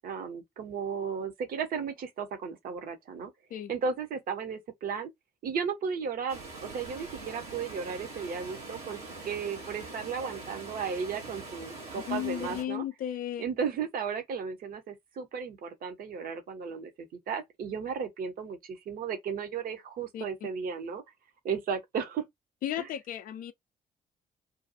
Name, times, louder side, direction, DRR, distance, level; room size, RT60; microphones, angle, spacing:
voice 1, 0.0-3.3 3.7-5.1 5.4-9.0 9.2-12.8 13.4-21.0 21.4-22.2 22.8-22.9, right 6 dB, 50° right, 0.7 m, -35 dB
Water, 6.3-12.6, right 3 dB, 80° right, 1.0 m, -43 dB
voice 2, 11.9-13.4 20.1-20.2 22.6-23.5, left 11 dB, 45° left, 0.4 m, -34 dB
2.6 x 2.3 x 2.6 m
figure-of-eight pair, 45°, 20 cm